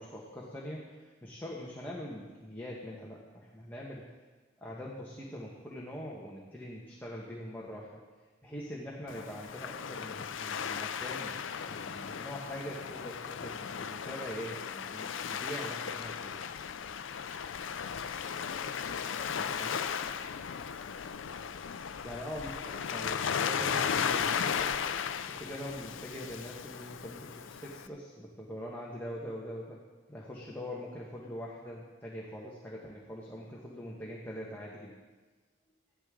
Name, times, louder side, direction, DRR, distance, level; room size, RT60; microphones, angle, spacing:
voice 1, 0.0-4.1 4.6-8.0 8.4-16.5 19.3-19.8 22.0-29.8 30.1-34.9, equal, 10° left, -4 dB, 1.3 m, -43 dB
Waves surf, 9.1-27.9, left 7 dB, 90° left, 0.5 m, -36 dB
15.0 x 12.0 x 3.8 m, 1.3 s
head